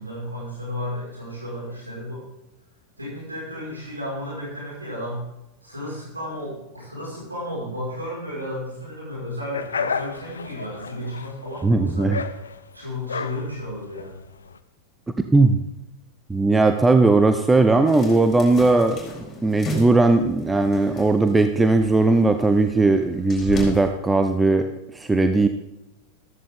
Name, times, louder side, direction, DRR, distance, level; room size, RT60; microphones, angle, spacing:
voice 1, 0.0-2.3 3.0-5.2 5.6-12.1 12.7-14.2, left 1 dB, 80° right, -5 dB, 5.6 m, -33 dB
sound 1, 9.5-14.6, left 5 dB, 70° left, 0.9 m, -32 dB
voice 2, 11.6-12.2 15.3-15.6 16.3-19.0 19.4-24.7 24.9-25.5, right 3 dB, 10° right, 7 dB, 0.8 m, -18 dB
sound 2, 17.9-23.9, left 1 dB, 25° left, 4.3 m, -36 dB
14.5 x 14.5 x 3.8 m, 0.91 s
figure-of-eight pair, 90°, 0 cm